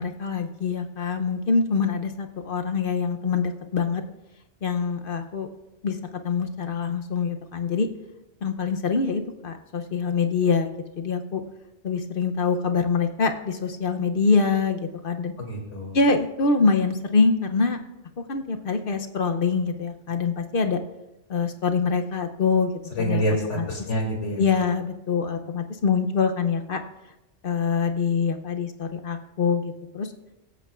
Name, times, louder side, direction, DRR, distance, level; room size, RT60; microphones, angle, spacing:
voice 1, 0.0-4.0 4.6-5.5 5.8-6.0 6.2-7.9 8.4-11.4 11.8-14.8 15.0-15.3 15.9-17.8 18.3-20.8 21.3-22.7 23.0-23.2 23.6-23.7 24.4-26.8 27.4-30.1, left 5 dB, 55° left, 6 dB, 0.8 m, -24 dB
voice 2, 15.4-16.0 22.9-24.4, equal, 90° left, 0 dB, 2.8 m, -27 dB
23.5 x 8.3 x 2.4 m, 0.98 s
omnidirectional pair, 1.2 m